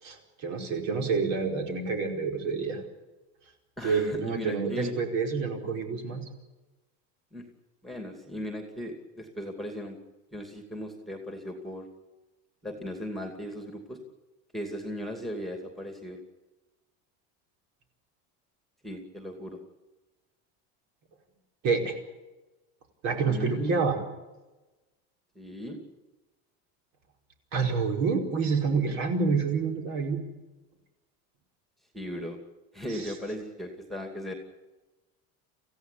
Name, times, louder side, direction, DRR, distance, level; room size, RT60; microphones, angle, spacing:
voice 1, 0.0-2.8 3.8-6.3 21.6-22.0 23.0-24.0 27.5-30.2 32.9-33.1, right 4 dB, 50° right, 3 dB, 5.0 m, -28 dB
voice 2, 3.8-4.9 7.3-7.4 7.8-10.0 10.3-11.9 12.6-14.0 14.5-16.2 18.8-19.6 23.3-23.8 25.3-25.8 31.9-32.4 32.7-34.3, equal, ahead, 5 dB, 2.5 m, -37 dB
27.5 x 16.0 x 8.5 m, 1.1 s
cardioid pair, 170°, 35 cm